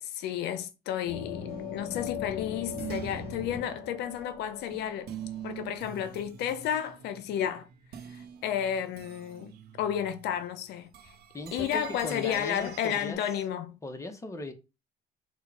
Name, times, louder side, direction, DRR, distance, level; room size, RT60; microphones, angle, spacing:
voice 1, 0.0-5.1 5.4-7.7 8.1-9.5 9.8-10.9 11.5-13.8, left 9 dB, 80° left, 0.6 m, -32 dB
sound 1, 1.1-5.7, left 7 dB, 55° left, 1.2 m, -40 dB
sound 2, 1.5-10.5 10.8-13.1, right 9 dB, 70° right, 0.8 m, -45 dB
voice 2, 11.3-13.2 13.8-14.5, left 2 dB, 20° left, 0.9 m, -38 dB
4.5 x 2.3 x 4.6 m
cardioid pair, 110°, 17 cm